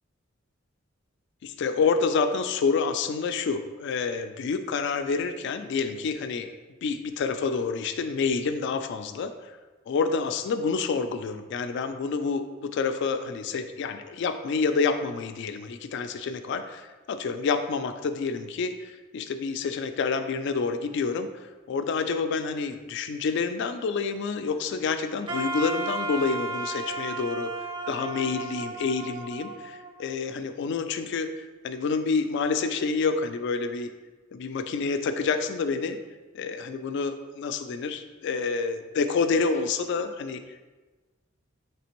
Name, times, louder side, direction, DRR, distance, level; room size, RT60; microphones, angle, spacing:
voice 1, 1.4-6.5 6.8-9.6 9.9-21.3 21.7-27.5 27.9-33.9 34.3-36.0 36.3-40.4, left 4 dB, 60° left, 9 dB, 0.3 m, -28 dB
Wind instrument woodwind instrument, 25.3-30.3, right 2 dB, 25° right, 0.3 m, -34 dB
4.2 x 3.3 x 2.9 m, 1.2 s
head